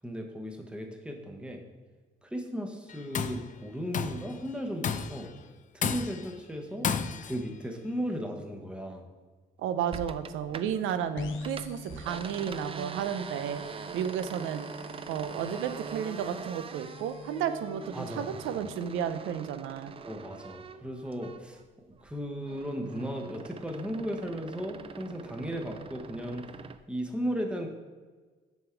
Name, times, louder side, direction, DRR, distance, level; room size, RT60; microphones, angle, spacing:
voice 1, 0.0-1.6 2.2-5.3 5.7-6.9 7.2-9.0 17.9-18.6 20.0-26.5 26.9-27.7, equal, 5° right, 3 dB, 0.9 m, -36 dB
Tools, 2.9-3.5 3.9-4.3 4.8-5.3 5.8-6.3 6.8-7.4, left 6 dB, 40° left, 0.4 m, -31 dB
voice 2, 9.6-13.6 13.9-14.6 15.1-19.9, right 8 dB, 90° right, 11 dB, 0.5 m, -33 dB
sound 1, 9.9-11.0 11.3-21.6 22.0-26.8, right 6 dB, 30° right, 0.3 m, -43 dB
sound 2, 11.2-18.8, left 5 dB, 85° left, 0.6 m, -45 dB
7.1 x 3.5 x 4.6 m, 1.4 s
cardioid pair, 90°, 20 cm